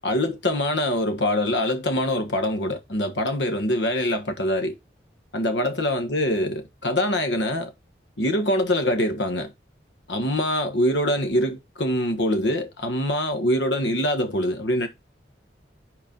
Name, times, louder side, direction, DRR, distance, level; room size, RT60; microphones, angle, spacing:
voice 1, 0.0-4.8 5.3-7.7 8.2-9.5 10.1-14.9, left 1 dB, 75° left, 1.4 m, -24 dB
4.8 x 4.6 x 5.3 m
head